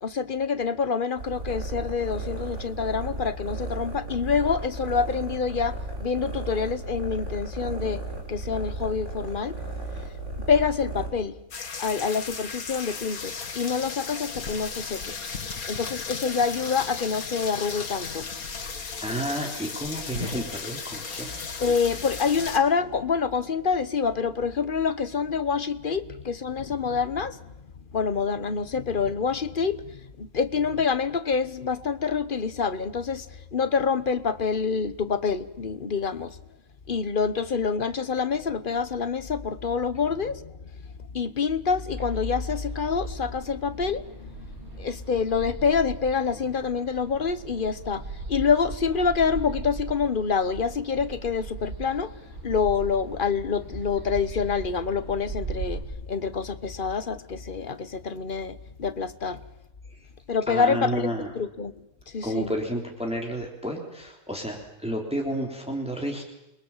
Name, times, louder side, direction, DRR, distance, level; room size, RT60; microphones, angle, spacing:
voice 1, 0.0-8.0 8.3-9.6 10.5-11.4 11.8-15.2 15.7-18.3 21.6-27.5 27.9-36.4 36.9-40.5 41.1-52.2 52.4-59.4 60.3-61.1 61.3-61.7 62.1-62.5, left 5 dB, 40° left, 13 dB, 1.2 m, -27 dB
sound 1, 1.2-11.1, right 2 dB, 55° right, 5.8 m, -35 dB
sound 2, 11.5-22.6, left 5 dB, 80° left, 2.3 m, -35 dB
voice 2, 19.0-21.3 59.9-60.0 60.5-61.3 62.2-66.2, right 1 dB, 5° right, 1 dB, 3.6 m, -31 dB
sound 3, 41.9-55.8, right 3 dB, 80° right, 5.0 m, -39 dB
29.0 x 22.0 x 7.4 m, 0.92 s
omnidirectional pair, 1.5 m